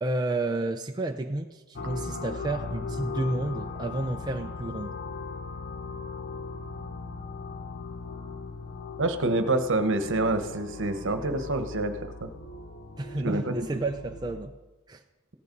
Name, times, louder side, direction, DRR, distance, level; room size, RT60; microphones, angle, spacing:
voice 1, 0.0-5.0 13.0-14.5 14.9-15.0, right 2 dB, 20° right, 3 dB, 0.5 m, -31 dB
sound 1, 1.7-14.4, left 3 dB, 45° left, 1.0 m, -38 dB
voice 2, 9.0-12.3 13.2-13.8, right 2 dB, 60° right, 8 dB, 1.1 m, -27 dB
15.0 x 11.0 x 5.3 m, 1.1 s
head